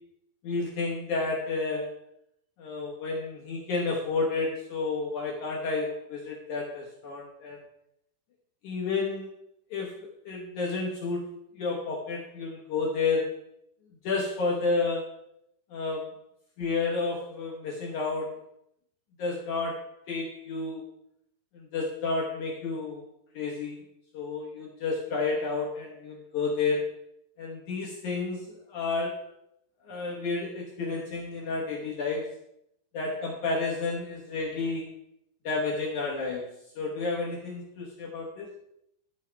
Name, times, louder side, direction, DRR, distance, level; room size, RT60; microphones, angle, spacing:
voice 1, 0.4-1.9 2.6-7.6 8.6-9.4 9.7-11.3 11.6-13.3 14.0-15.1 15.7-16.2 16.6-18.4 19.2-20.8 21.5-23.1 23.3-23.8 24.1-27.0 27.4-29.3 29.8-32.4 32.9-35.0 35.4-36.5 36.8-38.5, left 3 dB, 60° left, -2 dB, 2.2 m, -31 dB
11.5 x 5.6 x 4.6 m, 0.78 s
omnidirectional pair, 4.8 m